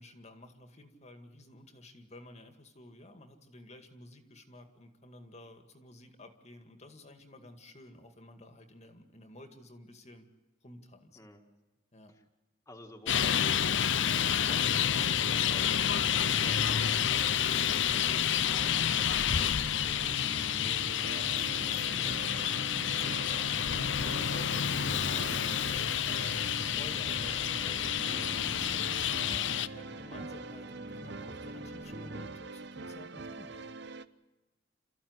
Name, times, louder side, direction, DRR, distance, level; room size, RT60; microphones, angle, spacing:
voice 1, 0.0-10.3 10.6-11.2 11.9-12.2 22.7-25.1 25.5-33.8, left 1 dB, 35° left, 7 dB, 2.1 m, -52 dB
voice 2, 12.7-17.3 17.8-20.8, left 1 dB, 15° left, 1 dB, 2.0 m, -52 dB
Traffic noise roadway noise, 13.1-29.7, left 9 dB, 65° left, 0.7 m, -29 dB
sound 1, 19.8-32.3, right 1 dB, 35° right, 2.4 m, -46 dB
sound 2, 20.7-34.1, right 3 dB, 60° right, 0.9 m, -44 dB
29.0 x 14.5 x 9.6 m, 1.2 s
head